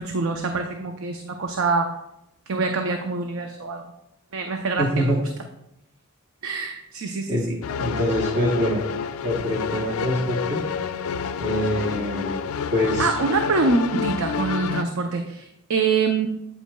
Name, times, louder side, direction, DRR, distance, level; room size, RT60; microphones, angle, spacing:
voice 1, 0.0-1.9 2.5-3.8 4.3-5.2 6.4-7.6 13.0-16.3, right 4 dB, 80° right, 5 dB, 0.6 m, -25 dB
voice 2, 4.8-5.2 7.3-7.4 7.7-8.8 9.2-10.7 11.4-13.2, equal, 35° right, -4 dB, 1.0 m, -25 dB
sound 1, 7.6-14.8, left 6 dB, 85° left, 0.4 m, -29 dB
8.4 x 8.2 x 2.2 m, 0.86 s
head